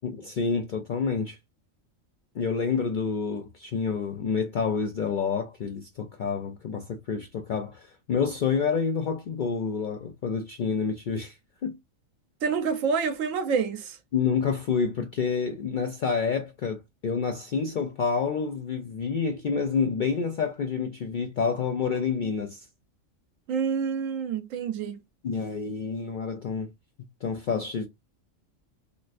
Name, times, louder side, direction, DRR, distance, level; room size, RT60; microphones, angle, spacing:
voice 1, 0.0-1.4 2.4-11.4 11.6-11.8 14.1-22.6 25.2-26.7 27.2-27.9, left 5 dB, 70° left, 0.4 m, -28 dB
voice 2, 12.4-14.0 23.5-25.0, right 6 dB, 80° right, 1.1 m, -27 dB
3.2 x 3.0 x 2.4 m
omnidirectional pair, 1.3 m